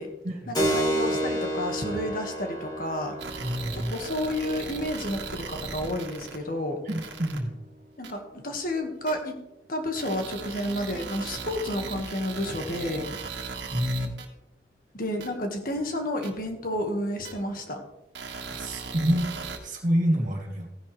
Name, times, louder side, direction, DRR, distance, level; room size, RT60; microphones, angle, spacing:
voice 1, 0.5-3.2 3.7-6.8 8.0-9.4 9.7-13.1 14.9-17.8, left 1 dB, 50° left, 4 dB, 1.8 m, -31 dB
Keyboard (musical), 0.5-8.8, right 1 dB, 25° left, 4.0 m, -33 dB
sound 1, 3.2-6.4 6.9-7.4 8.0-8.1 9.1-9.2 10.0-14.3 15.2-15.3 16.2-16.3 17.3-17.4 18.1-19.6, right 4 dB, 85° right, 1.7 m, -37 dB
voice 2, 3.3-3.9 6.8-7.6 13.7-14.1 18.5-19.3 19.6-20.7, equal, 45° right, 0 dB, 2.6 m, -27 dB
15.0 x 10.5 x 3.4 m, 0.94 s
head